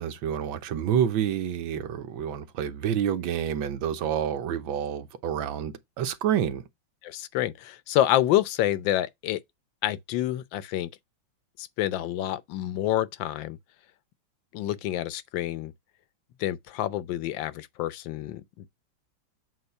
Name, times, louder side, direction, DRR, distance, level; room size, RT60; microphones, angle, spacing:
voice 1, 0.0-6.6, right 9 dB, 80° right, 1.7 m, -28 dB
voice 2, 7.0-9.4 9.8-10.9 11.6-13.6 14.5-15.7 16.4-18.7, left 13 dB, 75° left, 1.4 m, -28 dB
8.0 x 2.7 x 5.6 m
omnidirectional pair, 2.1 m